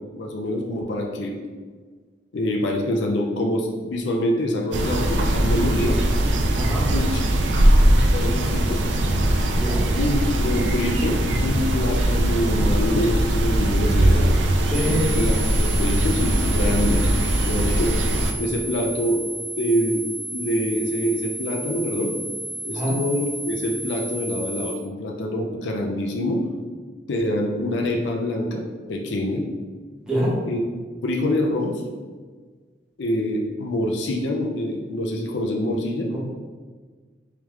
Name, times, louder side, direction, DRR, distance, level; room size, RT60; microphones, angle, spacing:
voice 1, 0.1-1.4 2.3-6.0 6.9-7.2 8.1-8.8 9.9-14.3 14.9-17.0 17.4-18.0 18.4-19.2 19.6-20.1 20.3-22.1 22.6-26.4 27.1-28.6 28.9-29.4 30.5-30.6 31.0-31.8 33.0-36.1, left 1 dB, 80° left, 1 dB, 0.5 m, -25 dB
sound 1, 4.7-18.3, right 1 dB, 80° right, 0.4 m, -20 dB
voice 2, 6.6-6.9 9.6-9.8 14.7-15.1 22.7-23.0 30.1-30.4 36.1-36.2, equal, 5° right, -8 dB, 0.8 m, -24 dB
sound 2, 14.7-24.7, right 1 dB, 35° right, 0.6 m, -33 dB
3.5 x 3.3 x 3.1 m, 1.5 s
head